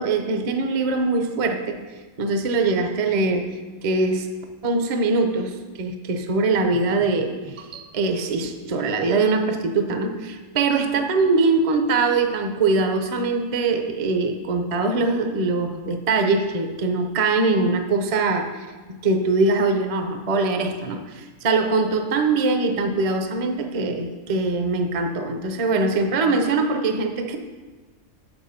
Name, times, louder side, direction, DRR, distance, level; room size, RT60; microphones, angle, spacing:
voice 1, 0.0-1.8 2.2-3.5 3.8-4.3 4.6-27.4, right 3 dB, 40° right, 6 dB, 0.5 m, -22 dB
7.1 x 7.1 x 5.6 m, 1.3 s
omnidirectional pair, 1.5 m